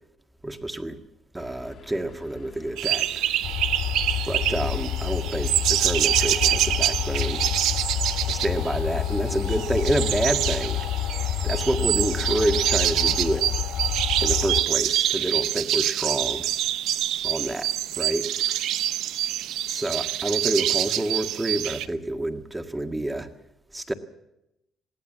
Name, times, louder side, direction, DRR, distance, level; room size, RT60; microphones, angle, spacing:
voice 1, 0.4-1.0 1.3-3.3 4.3-7.5 8.3-10.9 11.4-13.5 14.2-16.5 17.2-17.7 18.0-18.6 19.7-23.3 23.7-23.9, right 1 dB, 10° right, 7 dB, 1.8 m, -28 dB
sound 1, 1.4-12.2, left 8 dB, 55° left, 2.6 m, -49 dB
sound 2, 2.8-21.9, right 12 dB, 80° right, 0.8 m, -26 dB
sound 3, 3.4-14.6, left 11 dB, 80° left, 1.0 m, -29 dB
21.5 x 16.0 x 7.4 m, 0.86 s
cardioid pair, 105°, 0 cm